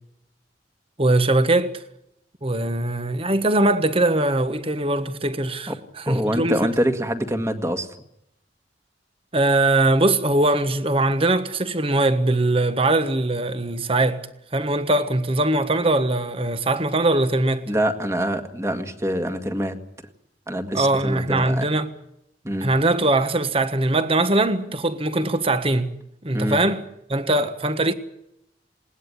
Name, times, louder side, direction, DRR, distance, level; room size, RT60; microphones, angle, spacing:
voice 1, 1.0-1.8 2.4-6.7 9.3-14.2 14.5-17.7 20.7-21.9 22.6-25.9 26.2-26.8 27.1-27.9, right 2 dB, 30° right, 1.4 m, -21 dB
voice 2, 6.1-7.9 17.7-19.8 20.5-21.7 22.4-22.7 26.3-26.6, equal, 15° right, 1.9 m, -25 dB
20.5 x 19.0 x 9.7 m
head